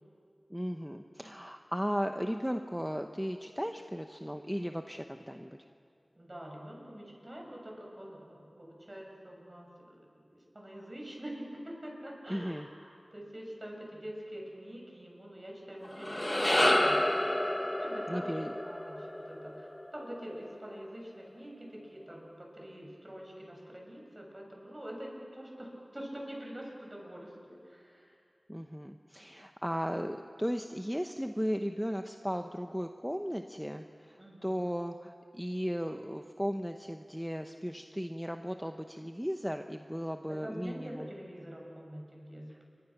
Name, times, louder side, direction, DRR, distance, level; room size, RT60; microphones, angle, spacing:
voice 1, 0.5-5.6 12.3-12.7 18.1-18.5 28.5-41.1, equal, ahead, 5 dB, 0.9 m, -36 dB
voice 2, 6.1-17.1 17.7-18.4 18.6-28.2 34.2-34.7 40.3-42.7, equal, 30° right, -1 dB, 6.9 m, -45 dB
sound 1, 15.8-20.3, left 1 dB, 25° left, 1.2 m, -30 dB
28.5 x 24.0 x 6.0 m, 2.3 s
wide cardioid pair, 50°, 0 cm